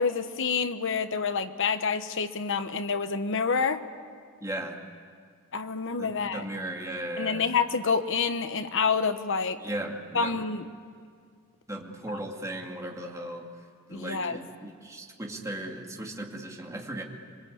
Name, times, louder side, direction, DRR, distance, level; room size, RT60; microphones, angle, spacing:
voice 1, 0.0-3.8 5.5-6.4 7.2-9.6 10.1-10.7 12.1-12.2 13.9-14.4, left 5 dB, 60° left, 10 dB, 1.1 m, -28 dB
voice 2, 4.4-4.8 6.0-7.4 9.6-10.4 11.7-13.4 13.9-17.0, right 1 dB, 15° right, 0 dB, 2.4 m, -36 dB
26.0 x 23.0 x 8.4 m, 2.1 s
head